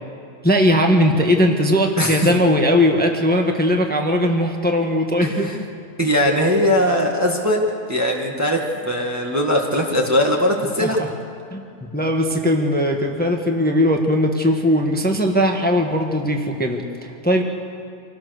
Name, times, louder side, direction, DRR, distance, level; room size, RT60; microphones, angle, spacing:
voice 1, 0.4-5.7 10.8-11.1 11.5-11.6 11.9-17.4, equal, 5° left, 2 dB, 1.4 m, -19 dB
voice 2, 2.0-2.4 5.2-5.6 6.0-7.6 7.9-11.0, equal, 10° right, -1 dB, 1.9 m, -20 dB
27.0 x 17.5 x 6.6 m, 2.7 s
omnidirectional pair, 1.5 m